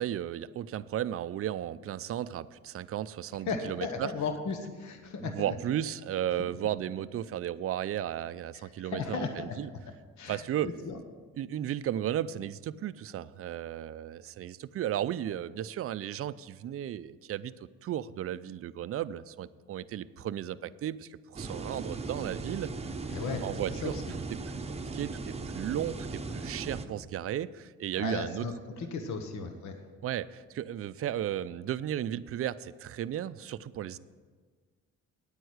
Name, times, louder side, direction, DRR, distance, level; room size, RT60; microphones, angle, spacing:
voice 1, 0.0-4.1 5.2-9.7 10.3-10.7 11.4-17.5 17.8-22.7 23.4-23.9 24.3-28.5 30.0-34.0, right 11 dB, 50° right, 16 dB, 0.4 m, -34 dB
voice 2, 3.5-5.5 8.8-9.6 10.2-11.0 23.1-23.4 23.8-24.0 28.0-29.8, left 5 dB, 70° left, 6 dB, 1.2 m, -35 dB
sound 1, 21.3-26.9, right 3 dB, 20° right, 0.8 m, -38 dB
9.4 x 8.9 x 6.5 m, 1.5 s
cardioid pair, 90°, 30 cm